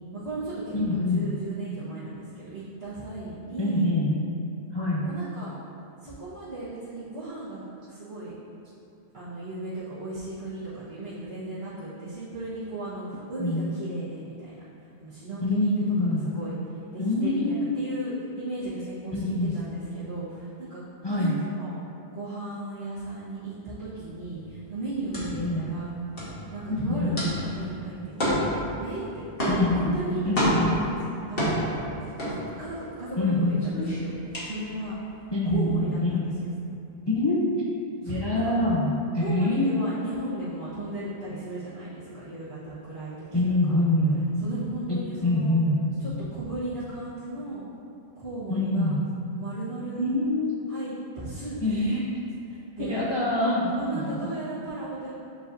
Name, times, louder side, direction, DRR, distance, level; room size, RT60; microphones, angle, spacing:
voice 1, 0.1-3.9 5.0-5.5 6.0-8.3 9.1-14.6 15.0-16.5 16.9-20.8 21.2-21.7 22.1-25.9 26.5-28.5 28.8-29.2 29.6-31.0 31.3-34.1 34.4-35.0 35.4-36.5 38.0-38.4 39.2-43.3 43.7-43.8 44.4-45.5 46.0-47.7 48.2-48.9 49.4-50.1 50.7-51.8 52.8-53.0 53.8-55.1, right 2 dB, 65° right, -15 dB, 1.6 m, -36 dB
voice 2, 0.7-1.3 3.6-4.2 4.7-5.1 13.4-13.7 15.4-16.3 17.0-18.2 19.1-19.6 21.0-21.4 25.3-25.7 26.7-27.2 29.5-30.7 33.2-33.6 35.3-36.3 37.1-37.4 38.0-39.7 43.3-44.2 44.9-45.9 48.5-49.1 50.0-50.6 51.6-52.1 52.8-54.3, left 1 dB, 30° left, -7 dB, 0.5 m, -25 dB
sound 1, 24.3-33.0 33.3-35.2, equal, 55° left, 1.6 m, -29 dB
7.7 x 5.2 x 2.7 m, 2.6 s
omnidirectional pair, 1.2 m